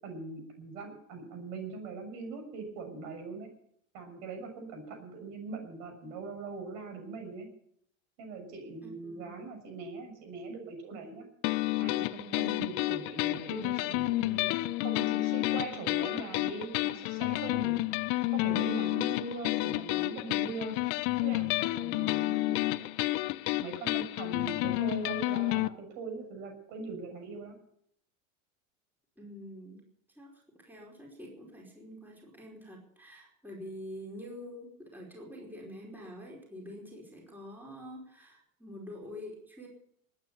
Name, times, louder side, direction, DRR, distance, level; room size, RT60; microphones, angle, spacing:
voice 1, 0.0-3.5 3.9-7.5 8.2-11.3 11.8-14.5 14.8-17.8 18.3-20.7 21.2-22.9 23.6-27.5, right 4 dB, 60° right, 5 dB, 6.7 m, -41 dB
voice 2, 8.8-9.4 12.3-12.5 29.2-29.8 30.1-39.7, equal, 5° right, -2 dB, 4.9 m, -46 dB
sound 1, 11.4-25.7, left 20 dB, 55° left, 0.8 m, -30 dB
20.0 x 9.5 x 7.0 m, 0.70 s
supercardioid pair, 115°, 39 cm